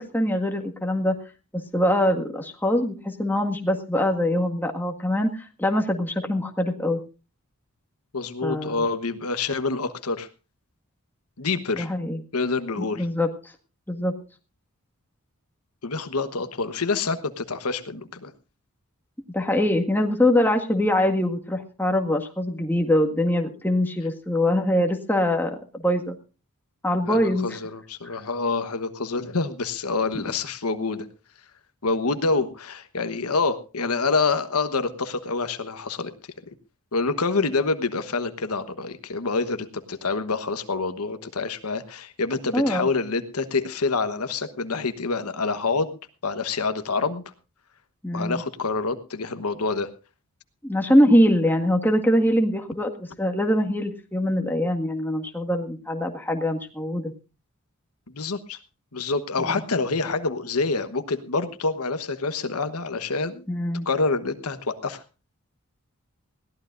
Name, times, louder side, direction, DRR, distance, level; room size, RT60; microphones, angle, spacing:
voice 1, 0.1-1.2 1.5-7.0 8.4-8.8 11.8-12.2 12.8-13.3 13.9-14.1 19.3-26.1 26.8-27.5 42.5-42.9 48.0-48.4 50.6-57.1 59.4-59.6 63.5-63.9, left 1 dB, 10° left, 3 dB, 1.8 m, -23 dB
voice 2, 8.1-10.3 11.4-11.9 12.3-13.1 15.8-18.3 27.1-31.1 31.8-36.1 36.9-46.0 46.2-47.2 48.1-49.9 58.1-58.6 58.9-63.4 63.8-65.0, left 4 dB, 75° left, 10 dB, 1.2 m, -27 dB
21.0 x 16.0 x 2.6 m, 0.33 s
head